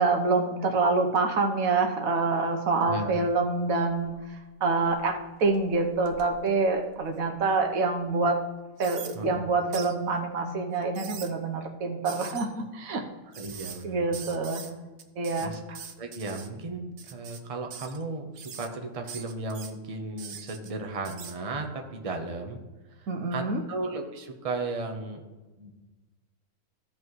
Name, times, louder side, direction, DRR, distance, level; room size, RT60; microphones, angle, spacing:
voice 1, 0.0-4.1 4.6-8.4 8.8-13.0 13.8-14.6 15.2-15.5 23.1-23.6, right 3 dB, 80° right, 3 dB, 1.4 m, -26 dB
voice 2, 2.8-3.2 9.1-9.4 13.4-14.3 15.4-22.6 22.9-25.2 25.6-25.7, right 3 dB, 30° right, 3 dB, 0.9 m, -35 dB
sound 1, 3.9-4.4 4.8-7.5 8.0-8.1 8.8-9.2 9.7-9.9 10.8-11.3 12.1-12.5 13.3-13.8 14.1-14.7 15.0-16.5 17.0-17.4 17.7-18.0 18.4-18.7 19.1-19.7 20.2-20.7 21.1-21.4, right 7 dB, 60° right, 1.0 m, -43 dB
14.5 x 5.4 x 3.1 m, 1.2 s
omnidirectional pair, 1.5 m